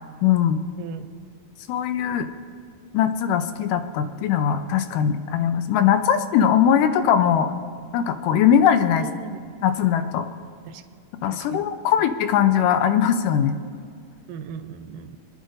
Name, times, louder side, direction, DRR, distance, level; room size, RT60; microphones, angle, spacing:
voice 1, 0.2-0.6 1.7-2.3 2.9-7.5 7.9-9.1 9.6-10.3 11.2-13.6, left 9 dB, 80° left, 9 dB, 2.2 m, -20 dB
voice 2, 9.0-9.4 10.7-10.8 11.3-11.7 14.3-15.2, right 6 dB, 90° right, 9 dB, 2.4 m, -37 dB
28.5 x 10.5 x 2.6 m, 2.3 s
omnidirectional pair, 3.8 m